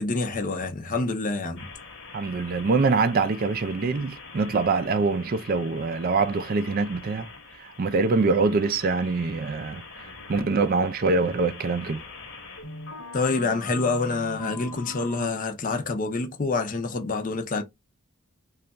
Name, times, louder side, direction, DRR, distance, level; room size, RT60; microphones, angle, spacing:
voice 1, 0.0-1.7 13.1-17.6, left 3 dB, 35° left, 0.6 m, -27 dB
sound 1, 1.6-15.3, left 3 dB, 55° left, 1.1 m, -42 dB
voice 2, 2.1-7.3 7.6-12.0, right 4 dB, 40° right, 0.4 m, -24 dB
3.2 x 2.4 x 3.9 m
head